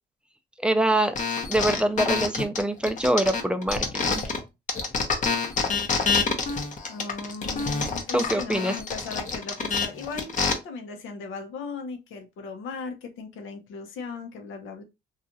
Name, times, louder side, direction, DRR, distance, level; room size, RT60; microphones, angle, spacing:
voice 1, 0.6-1.2 1.5-4.3 8.1-8.8, right 1 dB, 5° right, 0.4 m, -24 dB
sound 1, 1.1-4.4 4.7-10.5, left 4 dB, 40° left, 0.7 m, -27 dB
voice 2, 6.9-14.8, left 4 dB, 85° left, 0.7 m, -38 dB
2.9 x 2.4 x 2.6 m
cardioid pair, 90°, 20 cm